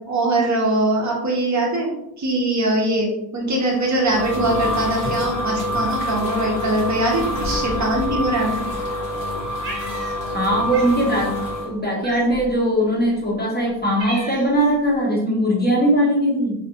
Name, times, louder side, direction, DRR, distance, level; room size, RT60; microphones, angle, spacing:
voice 1, 0.1-1.9 2.2-8.6, right 1 dB, 40° right, -1 dB, 0.5 m, -22 dB
sound 1, 3.7-11.7, left 1 dB, 85° left, 0.9 m, -26 dB
Cat, 9.6-10.4 10.7-11.0 12.0-12.5 13.2-13.3 13.7-14.7, right 2 dB, 85° right, 0.7 m, -34 dB
voice 2, 10.3-16.5, equal, 25° left, -4 dB, 0.5 m, -20 dB
2.5 x 2.1 x 2.7 m, 0.82 s
wide cardioid pair, 175°, 44 cm